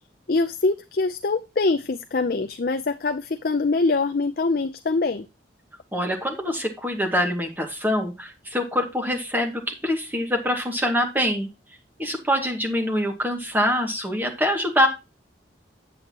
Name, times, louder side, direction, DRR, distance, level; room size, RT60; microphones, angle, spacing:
voice 1, 0.3-5.3, left 3 dB, 50° left, 8 dB, 0.5 m, -24 dB
voice 2, 5.9-11.5 12.0-14.9, equal, 10° right, 2 dB, 2.1 m, -24 dB
8.5 x 8.5 x 2.9 m, 0.26 s
head